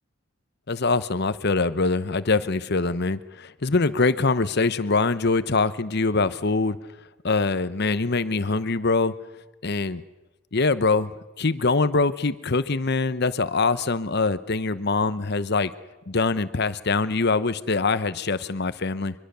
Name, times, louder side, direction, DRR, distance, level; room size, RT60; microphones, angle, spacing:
voice 1, 0.7-6.8 7.2-9.1 9.6-10.0 10.5-15.7 16.1-19.1, left 3 dB, 50° left, 14 dB, 0.9 m, -23 dB
24.0 x 22.0 x 6.8 m, 1.1 s
head